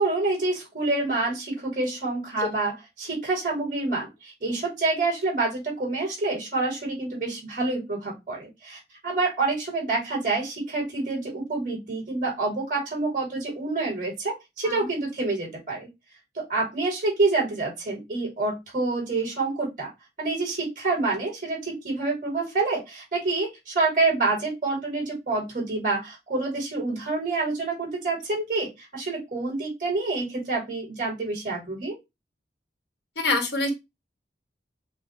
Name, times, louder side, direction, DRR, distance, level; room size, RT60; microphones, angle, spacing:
voice 1, 0.0-15.9 16.3-19.9 20.2-32.0, right 3 dB, 45° right, -1 dB, 2.6 m, -27 dB
voice 2, 33.2-33.7, left 3 dB, 70° left, 4 dB, 1.2 m, -26 dB
6.1 x 2.1 x 3.3 m, 0.22 s
head